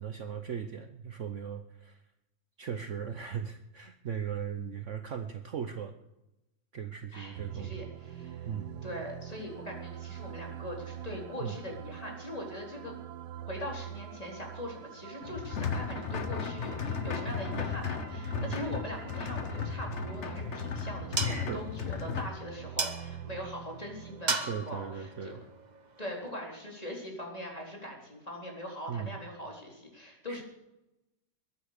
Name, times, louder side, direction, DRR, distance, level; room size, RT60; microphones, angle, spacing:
voice 1, 0.0-2.0 2.6-6.0 6.7-7.8 8.4-8.7 11.4-11.6 17.4-17.6 18.3-18.6 21.2-21.6 24.3-25.5 28.9-29.2 30.3-30.4, right 7 dB, 55° right, 8 dB, 1.1 m, -38 dB
voice 2, 7.1-8.5 8.8-12.9 13.4-25.4 26.0-30.4, left 1 dB, 25° left, -1 dB, 4.0 m, -41 dB
sound 1, 7.3-25.6, right 10 dB, 80° right, 1.4 m, -45 dB
sound 2, 15.2-22.3, left 6 dB, 50° left, 1.3 m, -35 dB
sound 3, 20.0-26.4, right 4 dB, 30° right, 1.1 m, -38 dB
22.0 x 8.6 x 6.7 m, 0.92 s
omnidirectional pair, 1.7 m